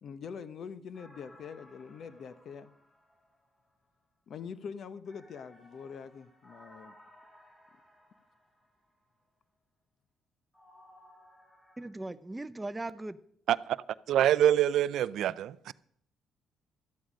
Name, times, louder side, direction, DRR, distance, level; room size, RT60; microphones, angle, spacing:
voice 1, 0.0-2.7 4.3-6.9, left 6 dB, 60° left, 0.8 m, -44 dB
sound 1, 0.9-3.8 5.0-8.9 10.5-11.9, left 1 dB, 25° left, 5.0 m, -59 dB
voice 2, 11.8-13.2, right 2 dB, 15° right, 0.5 m, -38 dB
voice 3, 13.5-13.8 14.1-15.7, right 11 dB, 75° right, 0.4 m, -25 dB
13.0 x 9.5 x 5.1 m
cardioid pair, 90°, 0 cm